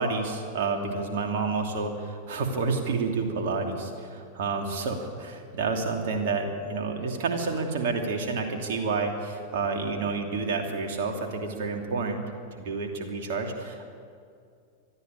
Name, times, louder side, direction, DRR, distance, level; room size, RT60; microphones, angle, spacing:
voice 1, 0.0-12.2 12.6-13.9, right 4 dB, 55° right, 3 dB, 2.8 m, -29 dB
21.0 x 13.5 x 9.3 m, 2.4 s
figure-of-eight pair, 90°, 0 cm